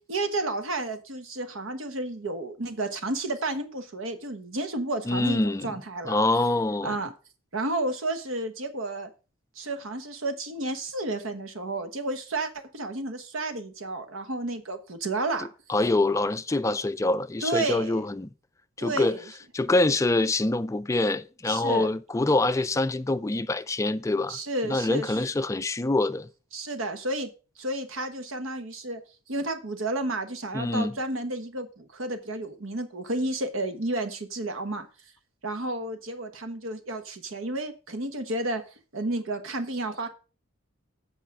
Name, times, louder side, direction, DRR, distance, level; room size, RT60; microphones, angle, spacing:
voice 1, 0.1-6.2 6.8-7.1 7.5-9.1 9.5-15.5 17.4-18.0 18.8-19.2 21.5-21.9 24.3-25.2 26.5-27.3 27.6-29.0 29.3-34.9 35.4-38.6 38.9-40.1, right 2 dB, 70° right, 1.2 m, -31 dB
voice 2, 5.1-5.7 6.1-7.0 15.4-18.3 18.8-19.2 19.5-24.4 24.7-26.3 30.5-31.0, left 2 dB, 15° left, 0.3 m, -25 dB
8.2 x 5.0 x 5.9 m
head